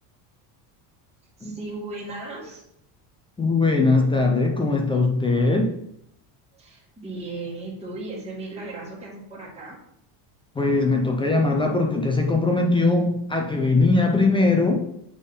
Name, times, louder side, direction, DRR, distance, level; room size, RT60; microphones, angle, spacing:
voice 1, 1.4-2.6 6.5-9.8, right 2 dB, 15° right, -4 dB, 1.7 m, -36 dB
voice 2, 3.4-5.7 10.6-14.8, left 3 dB, 10° left, 1 dB, 0.4 m, -20 dB
6.4 x 3.7 x 5.3 m, 0.75 s
cardioid pair, 160°, 47 cm